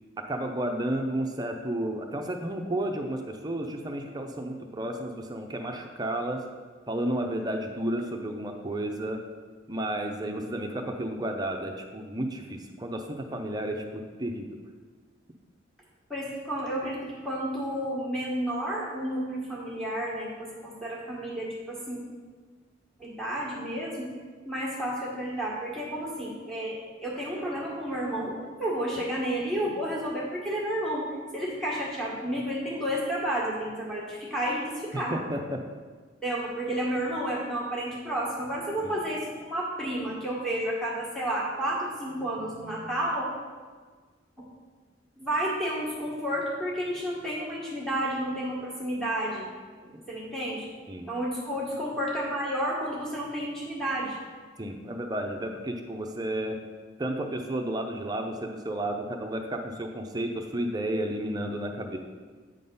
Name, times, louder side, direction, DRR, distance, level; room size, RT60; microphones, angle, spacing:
voice 1, 0.2-6.4 6.9-9.2 9.7-14.5 34.9-35.6 38.8-38.9 49.9-50.0 50.9-51.1 54.6-56.6 57.0-62.0, right 1 dB, 20° right, 3 dB, 0.5 m, -32 dB
voice 2, 16.1-22.0 23.0-24.1 24.4-28.3 28.6-31.1 31.3-35.1 36.2-43.3 45.2-49.5 49.8-50.7 51.1-54.2, right 1 dB, ahead, -6 dB, 1.5 m, -31 dB
8.5 x 3.9 x 5.4 m, 1.5 s
head